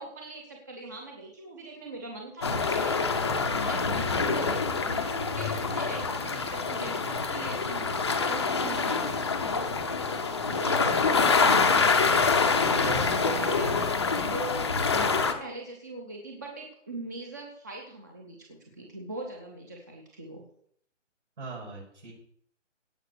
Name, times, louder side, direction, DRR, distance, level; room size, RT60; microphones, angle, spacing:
voice 1, 0.0-3.1 3.7-9.5 10.5-11.7 12.0-12.2 12.6-20.4, right 2 dB, 15° right, 1 dB, 0.7 m, -42 dB
sound 1, 2.4-15.3, left 4 dB, 20° left, 0.7 m, -26 dB
voice 2, 11.2-11.9 12.6-13.6 15.0-15.3 21.4-22.1, right 3 dB, 65° right, -5 dB, 6.2 m, -39 dB
16.5 x 5.7 x 6.7 m, 0.65 s
hypercardioid pair, 170°, 38 cm